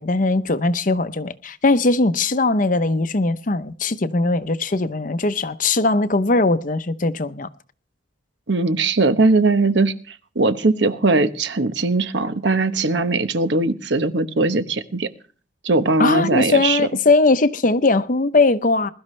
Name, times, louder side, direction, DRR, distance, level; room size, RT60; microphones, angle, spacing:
voice 1, 0.0-7.5 16.0-18.9, left 3 dB, 45° left, 0.8 m, -19 dB
voice 2, 8.5-9.9 10.3-15.1 15.6-16.8, right 3 dB, 65° right, 1.1 m, -19 dB
21.5 x 12.5 x 3.3 m
head